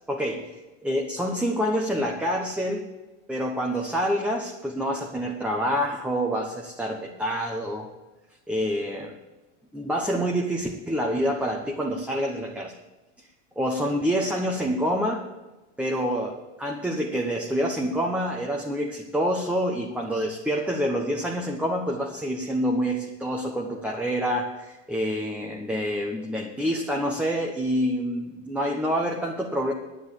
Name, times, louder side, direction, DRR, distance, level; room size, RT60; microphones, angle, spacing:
voice 1, 0.1-0.5 0.8-2.9 3.3-7.9 8.5-9.1 9.7-12.7 13.2-13.3 13.6-15.3 15.8-29.7, equal, 5° right, 0 dB, 1.0 m, -27 dB
9.6 x 9.4 x 6.7 m, 1.1 s
supercardioid pair, 120°, 37 cm